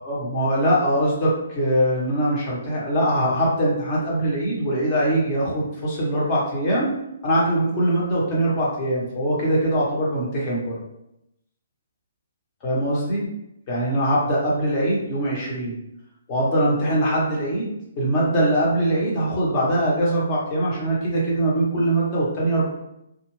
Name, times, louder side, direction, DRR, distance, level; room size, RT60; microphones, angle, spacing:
voice 1, 0.0-6.9 7.2-10.8 12.6-13.3 13.7-15.8 16.3-22.7, right 1 dB, 30° left, -6 dB, 1.1 m, -22 dB
2.4 x 2.4 x 3.2 m, 0.84 s
hypercardioid pair, 140°, 0 cm